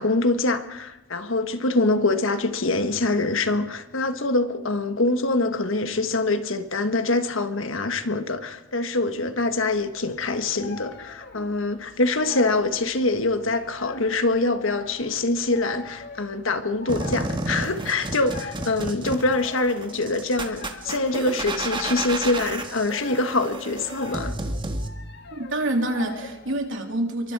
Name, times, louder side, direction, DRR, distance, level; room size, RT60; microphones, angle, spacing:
voice 1, 0.0-24.3, left 2 dB, 70° left, 1.5 m, -24 dB
sound 1, 9.7-26.8, left 4 dB, 55° left, 1.6 m, -43 dB
sound 2, 16.9-24.9, right 2 dB, 25° right, 1.6 m, -31 dB
voice 2, 25.3-27.3, right 1 dB, 65° right, 3.2 m, -27 dB
27.0 x 23.5 x 4.9 m
head